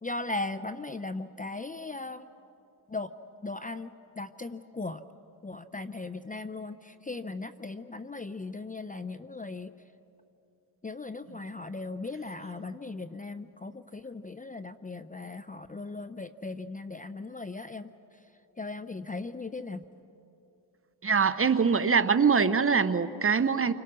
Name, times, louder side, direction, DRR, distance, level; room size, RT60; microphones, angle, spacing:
voice 1, 0.0-2.3 2.9-3.1 3.4-5.0 5.4-9.7 10.8-17.9 18.6-19.8, left 3 dB, 15° left, 12 dB, 0.6 m, -38 dB
voice 2, 21.0-23.7, right 5 dB, 30° right, 12 dB, 1.0 m, -23 dB
29.5 x 25.5 x 6.2 m, 2.9 s
cardioid pair, 80°, 47 cm